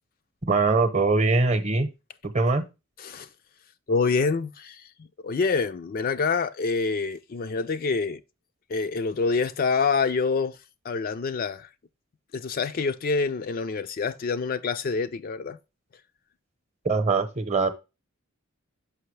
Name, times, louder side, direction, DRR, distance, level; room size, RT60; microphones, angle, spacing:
voice 1, 0.5-1.9 2.2-2.6 16.8-17.7, right 3 dB, 30° right, 0.8 m, -22 dB
voice 2, 3.0-3.3 3.9-8.2 8.7-10.6 10.8-11.7 12.3-15.6, left 4 dB, 45° left, 0.4 m, -26 dB
5.9 x 5.7 x 3.2 m
head